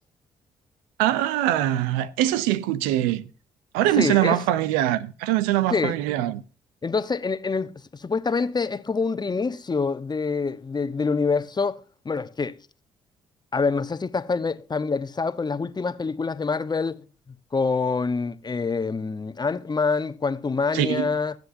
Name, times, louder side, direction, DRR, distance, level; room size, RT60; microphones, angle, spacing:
voice 1, 1.0-3.3 3.7-6.4 20.7-21.1, right 13 dB, 90° right, 0.7 m, -23 dB
voice 2, 4.0-4.4 5.7-5.9 6.8-11.8 12.0-12.6 13.5-17.0 17.5-21.3, left 4 dB, 30° left, 1.1 m, -26 dB
20.5 x 7.8 x 2.7 m
supercardioid pair, 55°, 14 cm